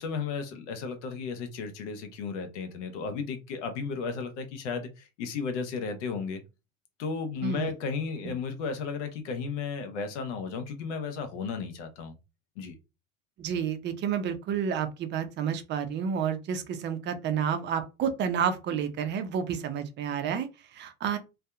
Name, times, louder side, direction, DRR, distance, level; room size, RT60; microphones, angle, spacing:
voice 1, 0.0-6.4 7.0-12.2 12.6-12.8, left 5 dB, 60° left, 0.7 m, -34 dB
voice 2, 7.4-7.7 8.2-8.3 13.4-21.2, right 7 dB, 30° right, 0.5 m, -30 dB
2.6 x 2.3 x 2.2 m
figure-of-eight pair, 70°, 39 cm